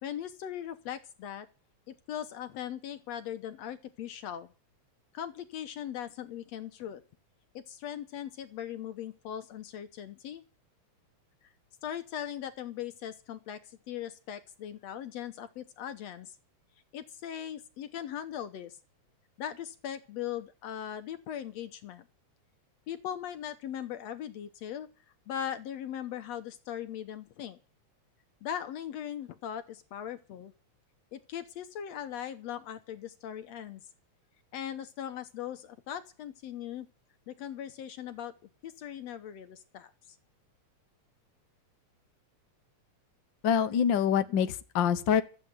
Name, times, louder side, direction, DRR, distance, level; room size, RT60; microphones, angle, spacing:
voice 1, 0.0-1.5 1.9-4.5 5.1-7.0 7.5-10.4 11.4-11.5 11.8-16.4 16.9-18.8 19.4-22.1 22.9-24.9 25.3-27.6 28.4-30.5 31.1-33.8 34.5-36.9 37.3-38.3 38.6-40.2 44.3-44.4, left 10 dB, 70° left, 10 dB, 2.0 m, -39 dB
voice 2, 43.4-45.2, left 8 dB, 55° left, 8 dB, 1.4 m, -25 dB
14.0 x 8.9 x 9.5 m, 0.35 s
omnidirectional pair, 3.4 m